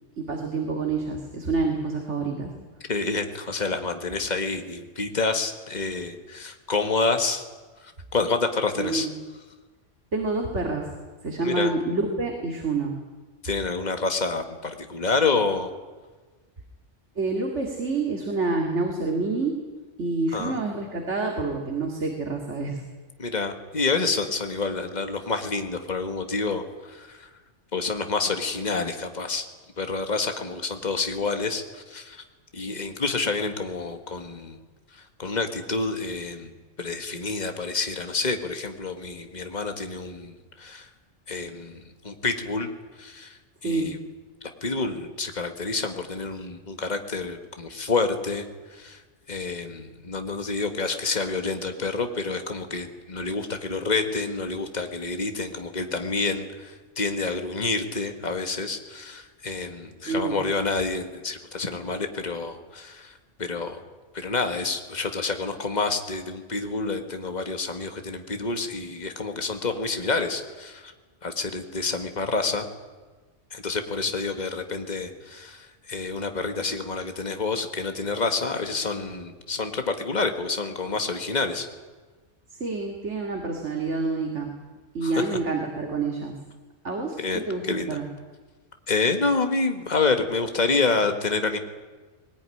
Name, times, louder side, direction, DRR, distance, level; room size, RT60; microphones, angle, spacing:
voice 1, 0.2-2.5 8.8-9.1 10.1-10.9 11.2-12.9 17.2-19.5 20.0-22.8 43.6-43.9 60.1-60.4 82.5-84.5 84.9-86.3 86.8-88.1, right 3 dB, 70° right, 2 dB, 2.7 m, -27 dB
voice 2, 2.9-7.4 8.1-9.1 11.4-11.7 13.4-15.7 20.3-20.6 23.2-27.3 27.7-29.5 29.8-32.2 32.5-34.6 35.2-36.5 36.8-40.3 40.6-40.9 41.3-42.7 43.0-43.3 43.6-44.0 44.6-48.5 48.7-49.0 49.3-63.1 63.4-63.8 64.1-70.9 71.2-72.6 73.5-81.7 85.0-85.2 87.2-88.0 88.9-91.6, left 3 dB, 35° left, 6 dB, 1.9 m, -28 dB
20.5 x 19.5 x 10.0 m, 1.3 s
omnidirectional pair, 1.2 m